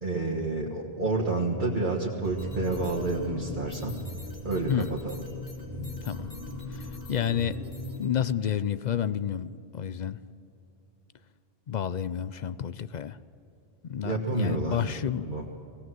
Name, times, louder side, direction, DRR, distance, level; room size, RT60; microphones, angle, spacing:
voice 1, 0.0-4.1 4.4-5.2 14.0-14.9 15.2-15.5, right 2 dB, 50° right, -3 dB, 1.7 m, -29 dB
sound 1, 2.2-8.1, left 2 dB, 70° left, 2.8 m, -38 dB
voice 2, 6.0-6.3 6.7-7.6 8.0-10.2 11.7-13.2 13.8-15.3, left 9 dB, 55° left, 15 dB, 0.6 m, -30 dB
19.5 x 17.0 x 7.7 m, 2.9 s
omnidirectional pair, 1.0 m